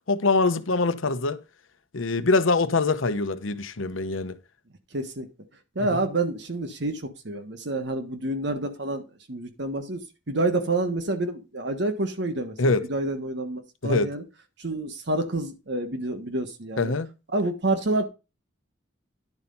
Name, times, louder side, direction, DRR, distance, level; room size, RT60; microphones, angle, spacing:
voice 1, 0.1-1.4 1.9-4.4 5.8-5.9 12.6-12.8 13.8-14.1 16.8-17.1, left 3 dB, 80° left, 0.8 m, -24 dB
voice 2, 4.9-5.3 5.7-9.0 9.3-14.2 14.6-16.9 17.3-18.0, right 2 dB, 60° right, 1.3 m, -28 dB
11.0 x 4.4 x 5.4 m
head